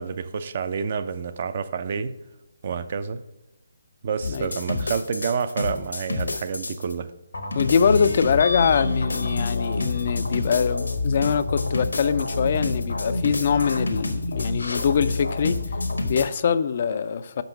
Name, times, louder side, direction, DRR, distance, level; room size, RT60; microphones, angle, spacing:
voice 1, 0.0-2.1 2.6-3.2 4.0-7.1, right 6 dB, 45° right, 0.5 m, -28 dB
sound 1, 4.2-6.9 7.3-16.2, left 2 dB, 80° left, 1.1 m, -27 dB
voice 2, 7.5-15.6 16.0-17.4, left 7 dB, 45° left, 0.4 m, -23 dB
5.3 x 5.3 x 5.8 m
figure-of-eight pair, 150°, 0 cm